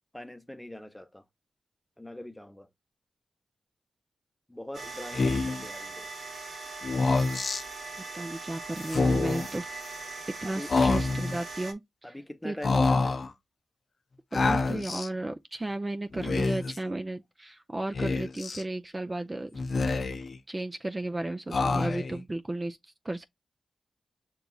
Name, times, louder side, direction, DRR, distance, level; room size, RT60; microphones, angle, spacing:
voice 1, 0.1-1.2 2.0-2.7 4.5-6.1 10.4-10.7 12.0-13.3, left 1 dB, 10° left, 0.8 m, -42 dB
sound 1, 4.7-11.7, right 3 dB, 65° right, 1.1 m, -40 dB
Speech, 5.1-5.7 6.8-7.6 8.8-9.5 10.7-11.4 12.6-13.3 14.3-15.1 16.1-16.8 17.9-18.6 19.5-20.4 21.5-22.2, left 3 dB, 60° left, 0.6 m, -27 dB
voice 2, 8.1-9.8 10.4-12.1 12.4-12.6 14.3-19.6 20.5-23.3, right 2 dB, 25° right, 0.5 m, -34 dB
6.6 x 3.0 x 2.3 m
cardioid pair, 55°, 0 cm